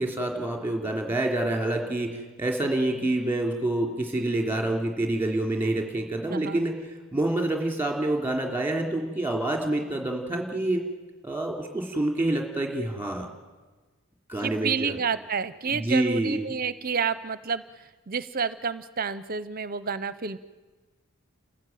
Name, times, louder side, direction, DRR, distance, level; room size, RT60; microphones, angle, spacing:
voice 1, 0.0-6.7 7.1-10.8 11.2-13.3 14.3-15.0 15.7-16.5, right 1 dB, 10° right, 2 dB, 3.1 m, -27 dB
voice 2, 6.3-6.6 14.4-20.4, right 6 dB, 40° right, 15 dB, 0.7 m, -30 dB
29.5 x 15.0 x 9.3 m, 1.3 s
head